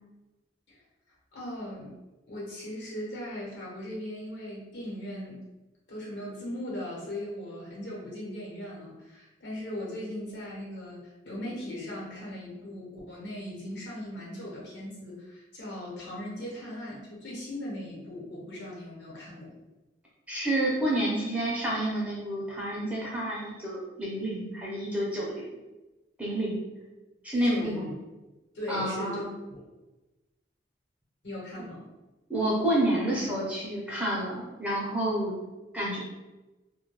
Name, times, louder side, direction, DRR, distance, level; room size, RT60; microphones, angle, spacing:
voice 1, 1.3-1.9 2.3-5.4 5.9-19.5 27.3-27.9 28.5-29.6 31.2-31.9, left 1 dB, 80° left, -4 dB, 1.0 m, -38 dB
voice 2, 20.3-25.4 26.2-26.6 27.2-27.9 28.7-29.3 32.3-35.3 35.7-36.0, right 1 dB, 10° right, -6 dB, 0.6 m, -29 dB
2.2 x 2.1 x 3.0 m, 1.1 s
head